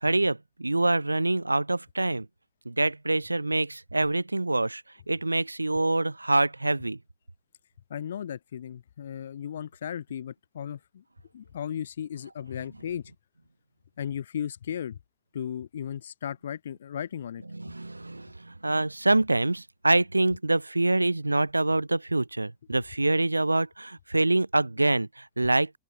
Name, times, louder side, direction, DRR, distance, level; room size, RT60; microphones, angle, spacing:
voice 1, 0.0-2.3 2.7-7.0 17.5-25.7, right 2 dB, 85° right, 0.6 m, -25 dB
voice 2, 7.9-11.0 11.3-13.0 14.0-15.0 15.3-17.4, left 9 dB, 65° left, 2.0 m, -35 dB
open air
figure-of-eight pair, 90°, 0 cm